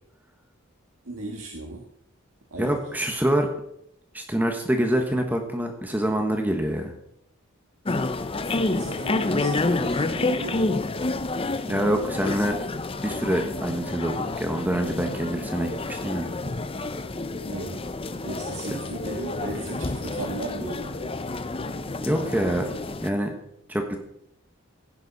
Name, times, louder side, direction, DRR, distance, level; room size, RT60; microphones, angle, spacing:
voice 1, 1.1-1.9 2.5-2.7 8.7-10.7 17.5-17.9 18.2-21.1, right 2 dB, 80° right, 1 dB, 1.7 m, -36 dB
voice 2, 2.6-3.5 4.1-6.9 11.7-12.6 13.0-16.3 22.0-22.7 23.0-23.3 23.7-24.0, right 1 dB, 10° right, 4 dB, 1.3 m, -25 dB
sound 1, 7.8-23.1, left 2 dB, 25° left, 0.6 m, -29 dB
15.5 x 10.5 x 4.2 m, 0.76 s
head